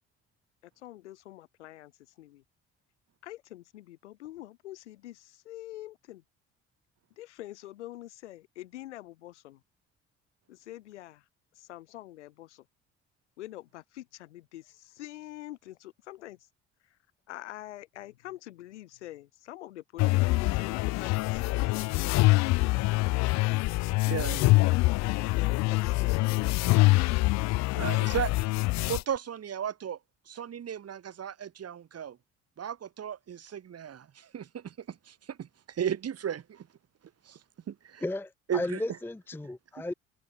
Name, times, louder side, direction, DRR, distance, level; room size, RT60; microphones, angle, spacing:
voice 1, 0.6-2.4 3.2-6.2 7.2-9.6 10.5-11.3 11.5-12.6 13.4-16.4 16.8-17.0 17.3-23.2 24.1-27.0, left 15 dB, 80° left, 6.3 m, -45 dB
sound 1, 20.0-29.0, left 21 dB, 50° left, 0.5 m, -25 dB
voice 2, 24.1-24.4 27.8-28.3 28.9-30.0 30.3-32.2 32.6-36.7 37.3-37.4 37.7-38.0 38.5-38.8, right 9 dB, 45° right, 2.6 m, -35 dB
voice 3, 38.0-39.9, left 2 dB, 5° left, 0.6 m, -34 dB
figure-of-eight pair, 50°, 35 cm